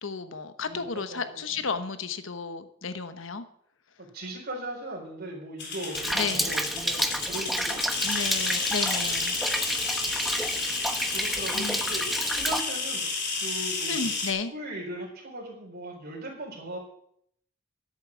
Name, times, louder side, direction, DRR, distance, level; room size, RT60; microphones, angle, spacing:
voice 1, 0.0-3.4 6.1-6.5 8.0-9.3 11.5-11.8 13.9-14.5, left 5 dB, 80° left, 10 dB, 1.1 m, -33 dB
voice 2, 0.7-1.4 4.0-7.8 11.1-13.1 13.4-14.1 14.5-16.8, right 1 dB, 55° right, -2 dB, 4.2 m, -38 dB
sound 1, 5.6-14.3, left 4 dB, 60° left, 3.4 m, -31 dB
Rain, 5.9-12.6, equal, ahead, 0.9 m, -30 dB
11.0 x 8.4 x 8.5 m, 0.68 s
head